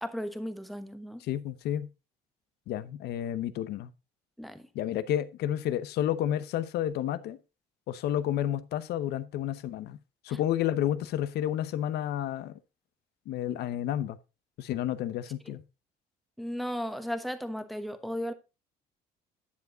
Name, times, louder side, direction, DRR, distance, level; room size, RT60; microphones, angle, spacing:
voice 1, 0.0-1.2 4.4-4.7 10.3-10.4 16.4-18.3, equal, ahead, 1.1 m, -35 dB
voice 2, 1.2-1.9 2.7-3.9 4.7-7.4 7.9-10.0 10.2-12.5 13.3-14.2 14.6-15.6, left 11 dB, 75° left, 0.9 m, -30 dB
10.5 x 7.1 x 3.9 m
cardioid pair, 110°, 17 cm